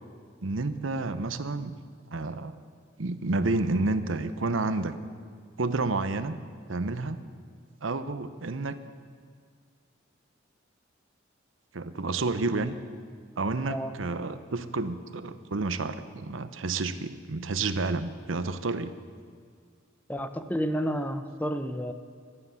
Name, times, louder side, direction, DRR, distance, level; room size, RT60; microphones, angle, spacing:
voice 1, 0.4-1.7 2.1-2.5 3.0-4.9 5.6-6.4 6.7-7.2 7.8-8.8 11.7-12.7 13.4-18.9, right 3 dB, 85° right, 11 dB, 0.8 m, -30 dB
voice 2, 20.1-21.9, equal, 10° left, 9 dB, 0.7 m, -30 dB
15.0 x 12.5 x 7.0 m, 2.1 s
head